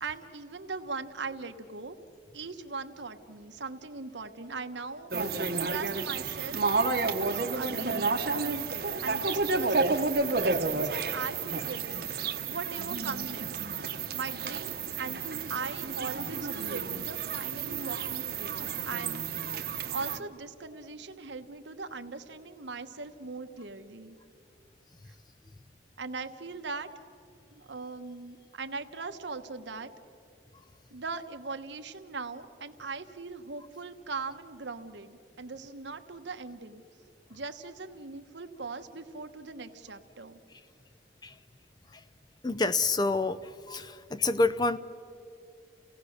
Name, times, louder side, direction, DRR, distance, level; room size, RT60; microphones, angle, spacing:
voice 1, 0.0-2.0 2.3-5.1 5.4-15.2 15.5-19.2 19.9-24.2 26.0-26.9 27.5-29.9 30.9-36.8 37.3-40.4, right 4 dB, 75° right, 8 dB, 1.1 m, -40 dB
sound 1, 5.1-20.2, right 4 dB, 55° right, 1.0 m, -31 dB
voice 2, 42.4-43.4 43.7-44.8, left 3 dB, 20° left, 13 dB, 0.5 m, -27 dB
30.0 x 17.5 x 6.5 m, 2.5 s
head